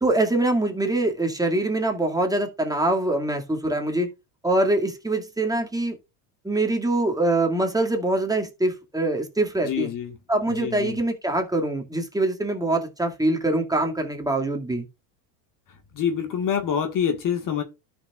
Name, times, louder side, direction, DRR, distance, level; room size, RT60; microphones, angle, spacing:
voice 1, 0.0-4.1 4.4-6.0 6.4-9.9 10.3-14.8, right 2 dB, 10° right, 2.2 m, -24 dB
voice 2, 9.6-10.2 10.5-11.0 15.9-17.6, left 8 dB, 40° left, 1.7 m, -26 dB
12.5 x 6.1 x 2.4 m
supercardioid pair, 110°, 47 cm